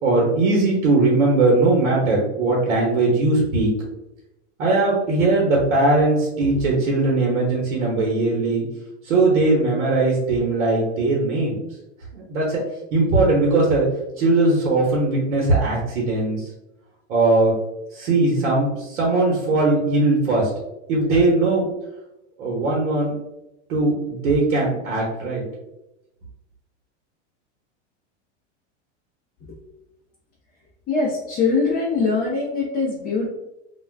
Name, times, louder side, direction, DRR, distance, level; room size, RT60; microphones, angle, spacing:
voice 1, 0.0-3.7 4.6-8.7 9.0-11.6 12.1-12.6 12.9-13.9 14.2-16.5 17.1-17.5 17.9-20.5 20.9-21.7 22.4-23.1 23.7-25.4, right 2 dB, 80° right, -3 dB, 1.0 m, -19 dB
voice 2, 30.9-33.3, left 4 dB, 25° left, -4 dB, 0.6 m, -22 dB
2.4 x 2.2 x 3.3 m, 0.91 s
supercardioid pair, 120°, 36 cm